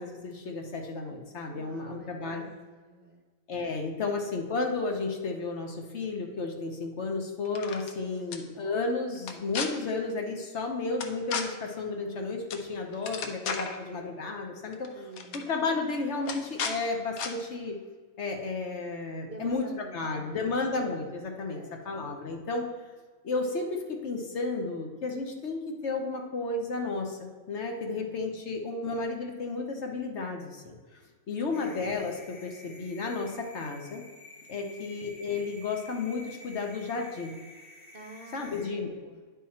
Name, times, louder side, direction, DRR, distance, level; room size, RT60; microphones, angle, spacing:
voice 1, 0.0-2.4 3.5-12.4 12.7-14.9 15.3-17.7 18.2-21.6 21.8-22.6 23.2-23.7 24.0-27.1 27.5-30.5 31.3-32.1 32.4-33.3 33.5-34.0 34.5-37.3 38.3-38.9, left 3 dB, 55° left, 2 dB, 1.0 m, -32 dB
voice 2, 1.5-3.2 8.0-8.3 14.9-15.5 19.2-20.7 21.5-22.0 27.9-28.2 31.5-31.6 34.6-34.8 37.9-39.2, right 2 dB, 50° right, 1 dB, 0.7 m, -49 dB
sound 1, 7.4-7.9 8.3-8.4 9.2-9.7 11.0-11.4 12.5-12.7 12.9-13.8 14.7-14.9 15.1-15.4 16.2-16.7 17.2-17.3, left 5 dB, 75° left, 1.2 m, -33 dB
sound 2, 31.5-38.7, left 1 dB, 30° left, 0.9 m, -51 dB
10.0 x 3.8 x 4.2 m, 1.5 s
omnidirectional pair, 1.5 m